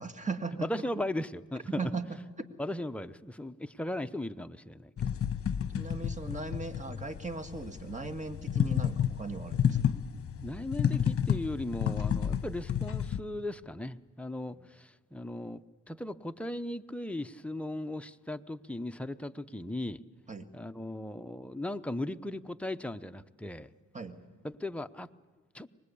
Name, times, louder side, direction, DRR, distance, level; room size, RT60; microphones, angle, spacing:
voice 1, 0.0-0.7 1.8-2.2 5.8-9.8 20.3-20.5 23.9-24.2, right 4 dB, 25° right, 7 dB, 2.0 m, -38 dB
voice 2, 0.6-1.8 2.6-5.1 10.4-20.0 20.5-23.7 24.4-25.1 25.5-25.7, left 1 dB, 5° left, 8 dB, 0.7 m, -37 dB
sound 1, 5.0-13.2, left 8 dB, 45° left, 1.2 m, -31 dB
24.5 x 20.0 x 8.5 m, 1.3 s
cardioid pair, 85°, 31 cm